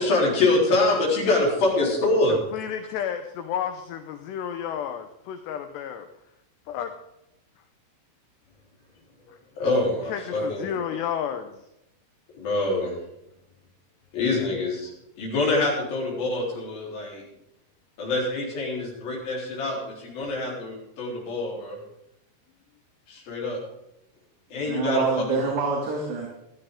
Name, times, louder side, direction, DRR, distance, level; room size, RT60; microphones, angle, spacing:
voice 1, 0.0-2.4 9.2-9.3 9.6-10.9 12.3-12.9 14.1-14.9 15.2-17.2 18.0-21.8 23.1-23.6 24.5-25.4, left 2 dB, 50° left, -3 dB, 5.2 m, -25 dB
voice 2, 2.3-6.1 6.7-6.9 9.3-9.4 10.1-11.6, left 9 dB, 80° left, 8 dB, 2.5 m, -32 dB
voice 3, 24.5-26.3, right 4 dB, 65° right, -2 dB, 4.0 m, -26 dB
17.5 x 13.0 x 3.7 m, 0.85 s
omnidirectional pair, 5.7 m